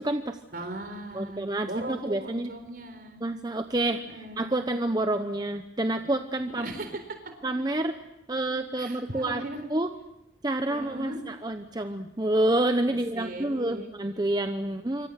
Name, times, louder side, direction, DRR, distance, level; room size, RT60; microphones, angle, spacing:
voice 1, 0.0-0.4 1.1-2.5 3.2-4.0 4.4-6.7 7.4-8.0 8.3-9.4 9.7-9.9 10.4-15.1, right 1 dB, 20° right, 7 dB, 0.8 m, -28 dB
voice 2, 0.5-3.2 3.8-4.7 6.5-7.2 8.8-9.7 10.7-11.2 13.1-13.9 14.6-14.7, right 1 dB, 50° right, 8 dB, 4.2 m, -38 dB
27.0 x 24.5 x 6.6 m, 0.91 s
head